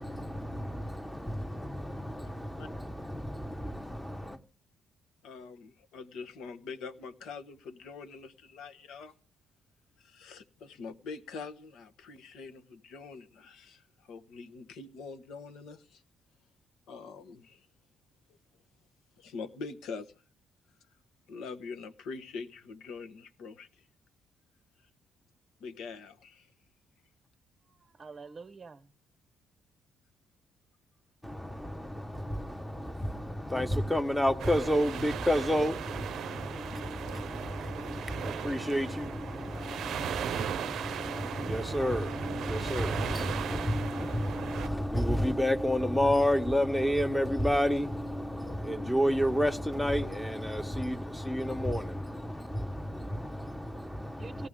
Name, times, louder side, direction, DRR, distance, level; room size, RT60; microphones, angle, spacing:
voice 1, 0.0-4.4 31.2-54.5, equal, 5° left, 1.1 m, -31 dB
voice 2, 5.2-9.1 10.0-16.0 16.9-17.7 19.2-20.1 21.3-23.8 25.6-26.5, left 4 dB, 85° left, 1.2 m, -44 dB
voice 3, 27.6-28.9 53.8-54.5, right 4 dB, 35° right, 0.7 m, -47 dB
sound 1, 34.4-44.7, right 9 dB, 75° right, 0.6 m, -38 dB
Wind instrument woodwind instrument, 39.5-44.1, left 7 dB, 50° left, 1.6 m, -53 dB
18.0 x 13.5 x 3.7 m
cardioid pair, 90°, 0 cm